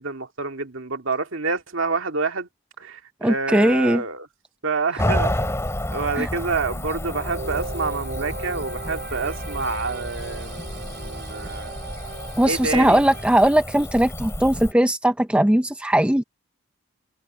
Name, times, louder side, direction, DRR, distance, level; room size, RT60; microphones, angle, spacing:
voice 1, 0.0-2.5 2.8-4.3 4.6-5.5 5.9-11.7 12.5-13.0, right 4 dB, 75° right, 2.3 m, -28 dB
voice 2, 3.2-4.0 6.2-6.3 12.4-16.2, right 1 dB, 5° right, 0.5 m, -19 dB
Cricket / Motor vehicle (road), 5.0-14.7, left 1 dB, 15° left, 3.1 m, -30 dB
sound 1, 7.0-13.2, right 2 dB, 50° right, 3.0 m, -36 dB
head